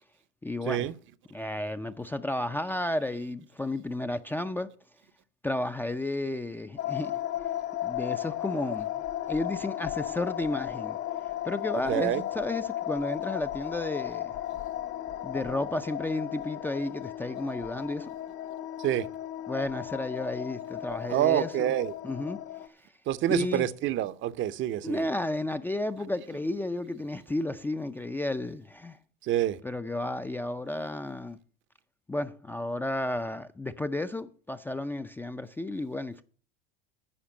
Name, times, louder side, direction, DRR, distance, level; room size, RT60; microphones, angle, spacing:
voice 1, 0.4-0.9 1.3-4.7 5.4-7.2 7.8-8.9 9.3-11.0 11.4-14.4 15.2-18.1 19.5-21.5 22.0-22.4 22.7-22.8 23.3-23.7 24.8-29.0 29.6-31.4 32.1-36.2, left 2 dB, 5° left, 0.4 m, -32 dB
sound 1, 6.8-22.7, left 12 dB, 50° left, 1.1 m, -35 dB
voice 2, 11.9-12.2 18.8-19.1 21.1-21.9 23.1-25.1 29.2-29.6, right 12 dB, 40° right, 0.7 m, -27 dB
10.0 x 5.0 x 8.2 m
hypercardioid pair, 95°, 30 cm